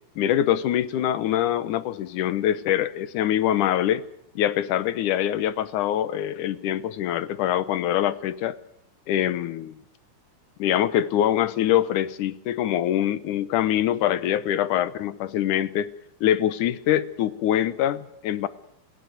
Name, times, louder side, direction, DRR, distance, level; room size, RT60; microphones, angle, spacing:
voice 1, 0.2-4.1 4.4-8.6 9.1-9.8 10.6-15.9 16.2-18.5, left 11 dB, 75° left, 15 dB, 2.5 m, -24 dB
27.0 x 16.5 x 8.1 m, 0.76 s
omnidirectional pair, 3.7 m